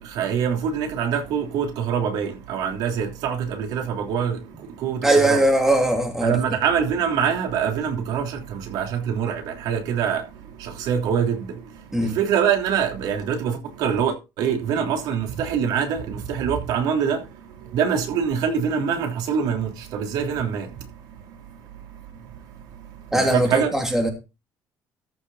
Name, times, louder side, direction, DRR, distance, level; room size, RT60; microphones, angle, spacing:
voice 1, 0.1-4.4 4.8-5.4 6.2-10.2 10.6-11.5 12.1-17.2 17.7-20.7 23.3-23.7, right 7 dB, 80° right, 3.2 m, -24 dB
voice 2, 5.0-6.4 11.9-12.2 23.1-24.1, right 1 dB, 5° right, 2.9 m, -20 dB
14.0 x 6.7 x 4.1 m
cardioid pair, 155°, 7 cm